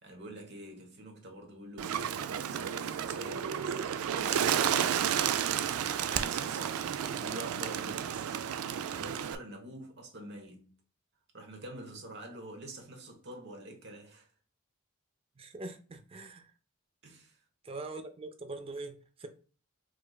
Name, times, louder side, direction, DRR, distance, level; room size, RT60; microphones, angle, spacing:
voice 1, 0.0-3.6 4.1-5.4 6.0-8.1 8.9-10.7 11.3-14.3 17.0-17.4, right 1 dB, 55° right, 1.1 m, -46 dB
Bird, 1.8-9.4, right 9 dB, 85° right, 0.3 m, -32 dB
voice 2, 15.4-16.5 17.6-19.3, right 2 dB, 25° right, 0.5 m, -43 dB
4.8 x 2.4 x 2.3 m
head